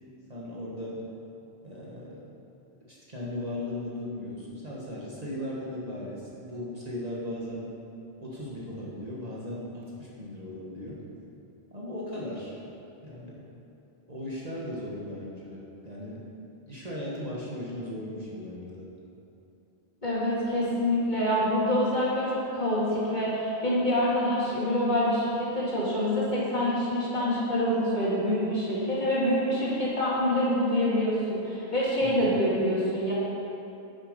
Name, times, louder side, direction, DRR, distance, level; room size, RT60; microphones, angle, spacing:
voice 1, 0.3-1.0 1.6-2.2 2.9-7.7 8.2-11.0 11.7-12.6 13.0-13.4 14.1-16.2 16.7-18.9 32.0-32.3, left 1 dB, 40° right, -6 dB, 1.4 m, -37 dB
voice 2, 20.0-33.1, left 1 dB, 45° left, -8 dB, 2.5 m, -26 dB
9.2 x 6.4 x 5.2 m, 2.9 s
omnidirectional pair, 1.1 m